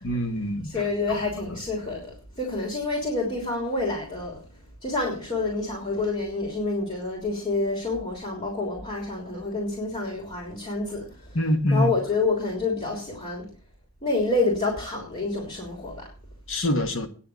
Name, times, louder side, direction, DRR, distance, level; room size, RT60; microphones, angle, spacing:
voice 1, 0.0-0.8 1.1-1.2 11.3-11.9 16.5-17.1, left 1 dB, 60° left, 1.8 m, -25 dB
voice 2, 0.6-4.4 4.8-11.4 11.7-13.5 14.0-16.1, left 3 dB, 30° left, 3.3 m, -28 dB
10.0 x 6.7 x 8.5 m
head